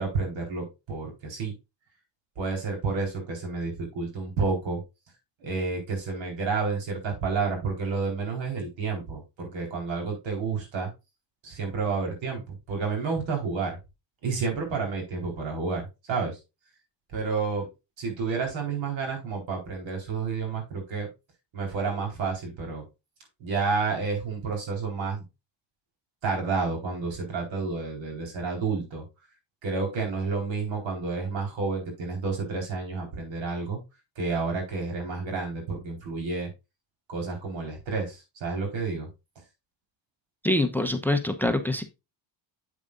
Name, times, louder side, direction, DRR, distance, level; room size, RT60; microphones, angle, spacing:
voice 1, 0.0-1.5 2.4-4.8 5.4-10.9 11.4-12.4 12.7-13.8 14.2-15.8 16.1-16.4 17.1-17.7 18.0-21.1 21.5-22.8 23.4-25.2 26.2-29.0 29.6-33.8 34.2-36.5 37.1-39.1, right 4 dB, 80° right, 4.3 m, -30 dB
voice 2, 40.4-41.8, left 1 dB, 5° left, 0.7 m, -25 dB
8.1 x 7.3 x 2.5 m
cardioid pair, 115°, 45 cm